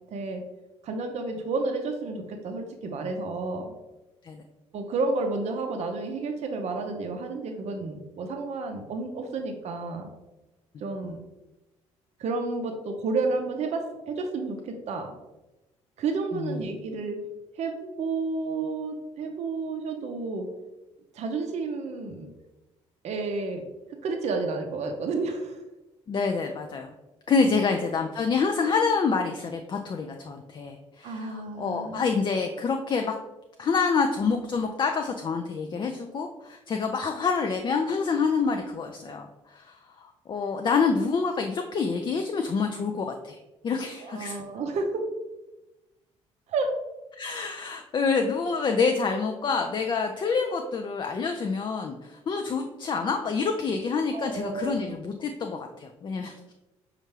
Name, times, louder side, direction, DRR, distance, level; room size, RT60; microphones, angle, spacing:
voice 1, 0.1-0.4 0.8-3.7 4.7-10.1 10.8-11.2 12.2-15.1 16.0-17.2 17.6-20.5 21.1-22.3 23.0-23.6 24.0-25.6 27.4-27.6 31.0-32.1 44.0-45.0 46.5-46.7 54.1-54.8, right 3 dB, 45° right, 4 dB, 0.6 m, -31 dB
voice 2, 26.1-26.9 27.3-33.2 33.6-43.4 43.6-44.4 47.1-56.5, left 5 dB, 30° left, 4 dB, 0.4 m, -27 dB
5.2 x 2.4 x 3.1 m, 1.0 s
figure-of-eight pair, 50°, 16 cm